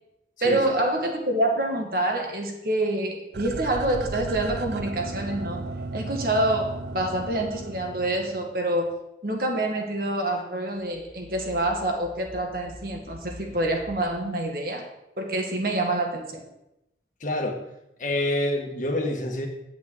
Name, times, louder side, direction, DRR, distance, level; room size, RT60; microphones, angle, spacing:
voice 1, 0.4-5.6 5.9-8.9 9.2-14.9 15.2-16.4, right 1 dB, 50° right, 3 dB, 1.8 m, -26 dB
sound 1, 3.3-8.5 8.9-9.0, right 3 dB, 75° right, 0.5 m, -35 dB
sound 2, 10.7-14.3, right 1 dB, 5° left, 1.9 m, -46 dB
voice 2, 17.2-17.5 18.0-19.5, left 1 dB, 45° left, 2 dB, 1.6 m, -27 dB
8.6 x 6.1 x 8.0 m, 0.87 s
head